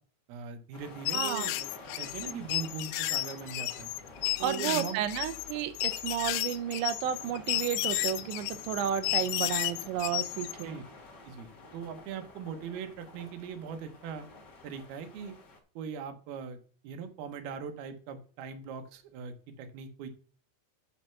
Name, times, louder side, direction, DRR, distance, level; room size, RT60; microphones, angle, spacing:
voice 1, 0.3-1.7 2.0-3.9 4.4-5.0 10.6-10.8 11.2-14.3 14.6-15.3 15.8-16.6 16.8-20.1, right 6 dB, 70° right, 7 dB, 2.9 m, -40 dB
sound 1, 0.7-15.6, left 3 dB, 50° left, 1.2 m, -50 dB
sound 2, 1.1-10.6, left 17 dB, 80° left, 2.6 m, -33 dB
voice 2, 1.1-1.5 4.4-10.8, right 10 dB, 90° right, 9 dB, 3.0 m, -32 dB
7.9 x 6.7 x 5.8 m, 0.43 s
omnidirectional pair, 5.0 m